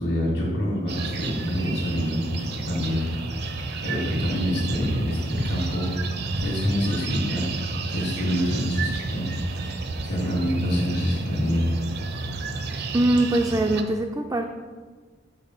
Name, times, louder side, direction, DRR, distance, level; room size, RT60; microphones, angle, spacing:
voice 1, 0.0-3.4 3.8-5.9 6.4-7.5 7.9-9.3 9.6-9.8 10.0-11.7, equal, 60° left, -5 dB, 1.5 m, -26 dB
sound 1, 0.9-13.8, right 3 dB, 55° right, 0.6 m, -31 dB
voice 2, 12.9-14.5, right 1 dB, 15° right, 2 dB, 0.3 m, -22 dB
6.6 x 4.4 x 5.7 m, 1.5 s
head